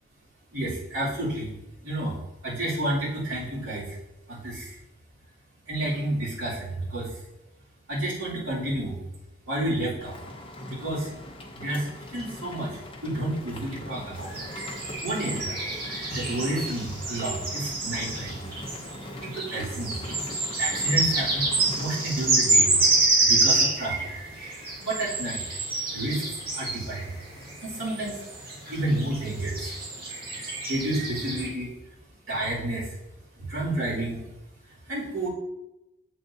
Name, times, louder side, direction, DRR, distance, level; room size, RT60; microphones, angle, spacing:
voice 1, 0.5-1.5 1.8-2.2 2.4-4.0 4.3-4.8 5.7-7.1 7.9-9.0 9.5-10.1 10.7-11.1 11.5-14.3 15.0-18.4 19.2-20.0 20.6-22.7 23.2-24.1 24.8-25.4 25.9-27.1 27.6-28.2 28.7-29.7 30.7-31.7 32.3-32.9 33.4-34.2 34.9-35.3, right 1 dB, 75° right, -7 dB, 2.6 m, -30 dB
Rain, 10.0-23.1, left 1 dB, 25° left, 0.7 m, -41 dB
sound 1, 14.2-31.5, right 3 dB, 45° right, 1.7 m, -28 dB
7.4 x 6.5 x 2.7 m, 0.96 s
head